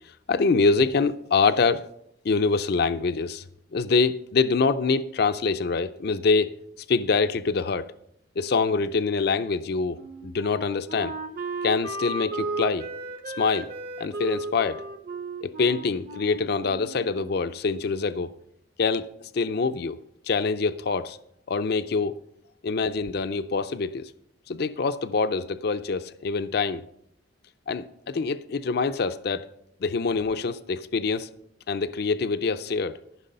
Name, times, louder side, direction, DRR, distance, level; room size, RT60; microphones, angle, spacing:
voice 1, 0.3-1.9 2.2-3.4 3.7-6.5 6.9-7.9 8.4-11.1 11.6-12.9 13.4-13.7 14.0-14.8 15.4-18.3 18.8-19.1 19.3-20.0 20.3-21.2 21.5-22.1 22.6-24.1 24.5-26.8 27.7-29.5 29.8-31.3 31.7-33.0, left 4 dB, 60° left, 0.5 m, -25 dB
Wind instrument woodwind instrument, 9.9-17.4, right 2 dB, 55° right, 1.0 m, -35 dB
14.0 x 6.1 x 5.4 m
head